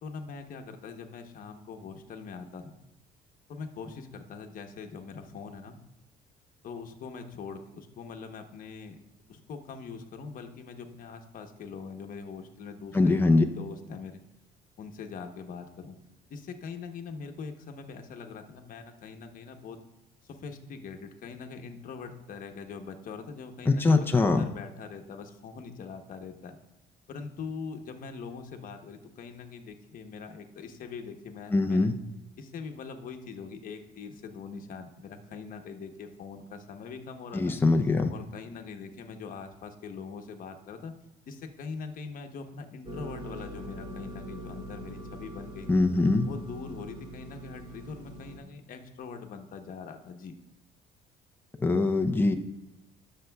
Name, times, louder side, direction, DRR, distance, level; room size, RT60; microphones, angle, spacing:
voice 1, 0.0-2.7 3.5-5.8 6.6-9.0 9.3-13.2 13.5-14.2 14.8-16.0 16.3-19.8 20.2-26.6 27.1-32.0 32.4-37.6 38.1-40.9 41.3-45.8 46.3-50.3, left 5 dB, 55° left, 5 dB, 1.0 m, -42 dB
voice 2, 12.9-13.4 23.7-24.5 31.5-32.0 37.3-38.1 45.7-46.3 51.6-52.4, left 3 dB, 10° left, 4 dB, 0.6 m, -22 dB
sound 1, 42.8-48.4, equal, 30° right, 2.6 m, -42 dB
19.0 x 6.7 x 2.3 m, 0.91 s
cardioid pair, 110°, 17 cm